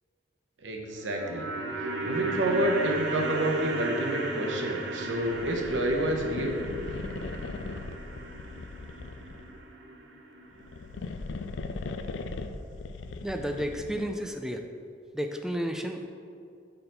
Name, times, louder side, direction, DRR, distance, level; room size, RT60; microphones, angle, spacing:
voice 1, 0.6-1.5 1.8-6.6, right 1 dB, 90° right, 1 dB, 1.0 m, -28 dB
sound 1, 0.9-11.2 11.4-11.5, right 2 dB, 65° right, 0.7 m, -36 dB
sound 2, 5.1-9.6 10.5-14.2, left 3 dB, 80° left, 0.4 m, -39 dB
voice 2, 13.2-14.7 15.1-16.1, equal, 5° right, 4 dB, 0.4 m, -32 dB
6.8 x 4.1 x 5.3 m, 2.5 s
head